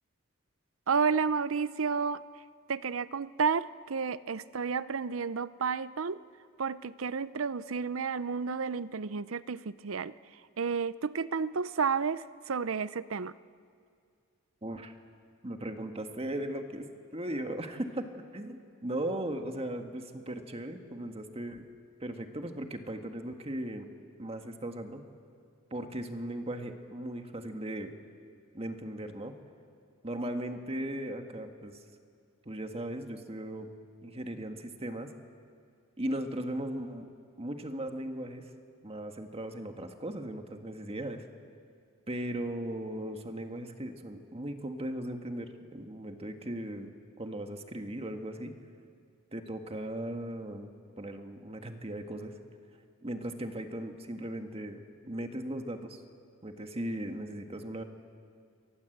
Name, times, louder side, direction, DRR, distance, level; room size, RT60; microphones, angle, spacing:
voice 1, 0.9-2.2 2.7-6.2 6.6-10.1 10.6-13.3, right 5 dB, 75° right, 16 dB, 0.7 m, -31 dB
voice 2, 14.6-14.9 15.4-21.6 22.0-23.9 24.2-25.0 25.7-27.9 28.5-29.3 30.0-31.8 32.4-33.7 34.0-35.1 36.0-37.1 37.4-38.4 38.8-41.3 42.1-46.9 47.2-48.5 49.3-50.7 51.0-52.4 53.0-56.0 56.4-57.8, right 1 dB, 30° right, 5 dB, 1.7 m, -37 dB
27.5 x 23.5 x 8.0 m, 2.2 s
head